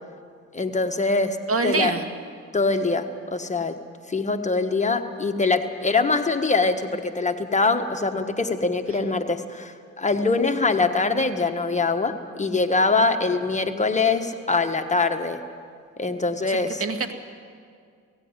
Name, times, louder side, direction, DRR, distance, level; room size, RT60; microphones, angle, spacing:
voice 1, 0.5-1.4 1.6-1.9 2.5-3.8 4.1-15.4 16.0-16.8, left 3 dB, 25° left, 6 dB, 1.3 m, -23 dB
voice 2, 1.5-2.1 16.4-17.1, right 4 dB, 50° right, 6 dB, 1.8 m, -25 dB
17.5 x 16.0 x 9.7 m, 2.2 s
cardioid pair, 90°, 30 cm